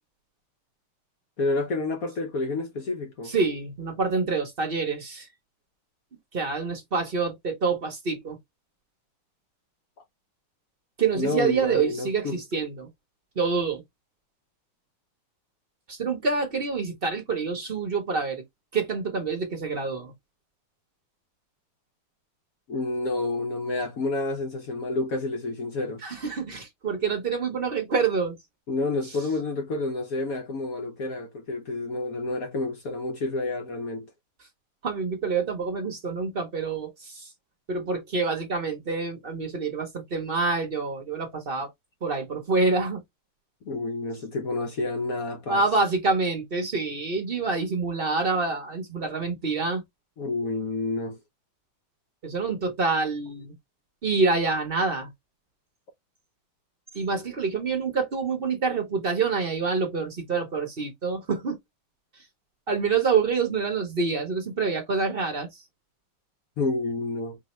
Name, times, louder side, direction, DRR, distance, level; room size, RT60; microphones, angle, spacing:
voice 1, 1.4-3.3 11.1-12.4 22.7-26.0 28.7-34.1 43.6-45.6 50.2-51.2 66.6-67.4, left 2 dB, 60° left, 0.9 m, -29 dB
voice 2, 3.2-5.3 6.3-8.4 11.0-12.9 13.4-13.8 15.9-18.4 18.7-20.1 26.0-28.4 34.8-37.3 37.7-41.7 42.0-43.0 45.5-49.8 52.2-53.5 54.0-55.1 56.9-61.6 62.7-65.6, right 4 dB, 45° right, 0.7 m, -27 dB
5.1 x 2.7 x 3.1 m
omnidirectional pair, 2.4 m